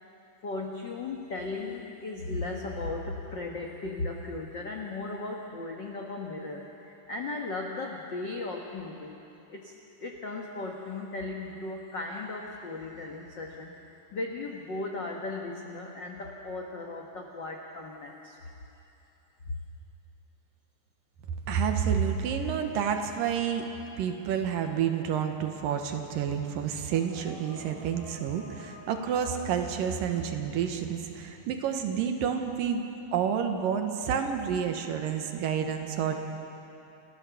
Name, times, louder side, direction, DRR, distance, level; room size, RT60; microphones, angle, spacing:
voice 1, 0.4-9.2 9.5-9.7 10.0-13.8 14.1-18.4, left 3 dB, 80° left, 0 dB, 1.0 m, -36 dB
voice 2, 21.5-23.7 24.0-32.8 33.1-36.2, right 7 dB, 70° right, 5 dB, 2.7 m, -29 dB
sound 1, 26.9-30.7 31.9-32.4, equal, 55° left, 3.5 m, -50 dB
30.0 x 14.0 x 7.1 m, 3.0 s
omnidirectional pair, 4.3 m